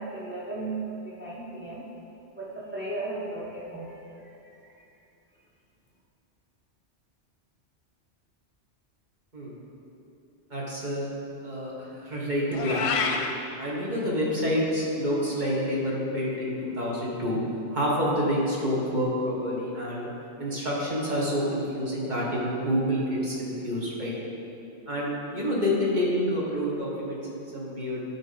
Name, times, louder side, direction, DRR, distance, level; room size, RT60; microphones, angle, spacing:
voice 1, 0.0-1.9 2.3-4.0 4.5-4.8, right 2 dB, 10° right, -5 dB, 0.6 m, -36 dB
voice 2, 10.5-11.1 11.4-13.2 13.6-17.4 17.7-20.1 20.4-24.1 24.9-28.0, equal, 40° right, -5 dB, 1.5 m, -28 dB
Meow, 12.5-13.3, left 5 dB, 70° left, 0.9 m, -27 dB
12.0 x 4.2 x 4.0 m, 2.8 s
omnidirectional pair, 1.2 m